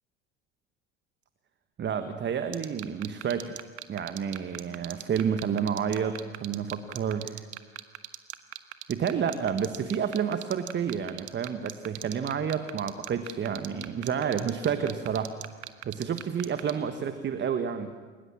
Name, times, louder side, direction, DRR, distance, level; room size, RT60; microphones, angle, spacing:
voice 1, 1.8-3.5 3.9-7.5 8.9-15.3 15.8-17.9, right 7 dB, 30° right, 9 dB, 1.4 m, -30 dB
sound 1, 2.5-16.7, right 14 dB, 70° right, 1.3 m, -37 dB
29.0 x 17.0 x 7.5 m, 1.5 s
figure-of-eight pair, 70°, 35 cm